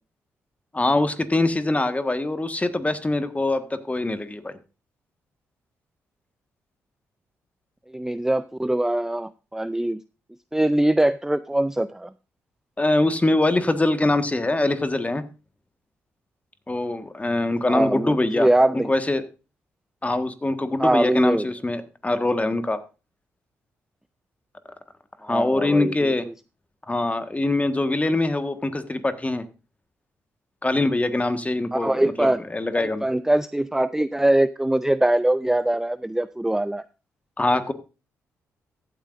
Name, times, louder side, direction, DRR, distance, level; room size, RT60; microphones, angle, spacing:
voice 1, 0.7-4.6 12.8-15.2 16.7-18.5 18.7-19.2 20.0-22.8 25.2-26.3 26.9-29.4 30.6-33.0 37.4-37.7, left 2 dB, 20° left, 10 dB, 1.5 m, -23 dB
voice 2, 7.9-10.0 10.5-12.1 17.7-18.9 20.8-21.5 25.3-26.3 31.7-32.4 32.7-36.8, right 1 dB, 5° right, 15 dB, 0.4 m, -22 dB
14.5 x 9.2 x 2.5 m, 0.31 s
hypercardioid pair, 45°, 7 cm